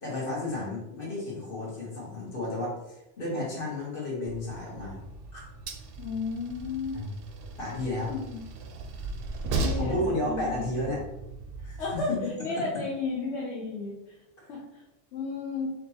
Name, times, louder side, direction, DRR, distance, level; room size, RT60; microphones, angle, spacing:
voice 1, 0.0-5.0 5.3-5.4 6.9-7.1 7.6-8.1 9.8-11.0 11.6-12.2 14.4-14.5, left 1 dB, 50° left, -5 dB, 1.7 m, -32 dB
Train, 4.3-12.0, right 2 dB, 65° right, 0.7 m, -36 dB
voice 2, 6.0-7.0 8.1-8.4 9.6-10.7 11.8-14.2 14.5-14.8 15.1-15.7, left 4 dB, 75° left, -4 dB, 1.0 m, -33 dB
3.5 x 2.9 x 4.2 m, 0.93 s
omnidirectional pair, 1.2 m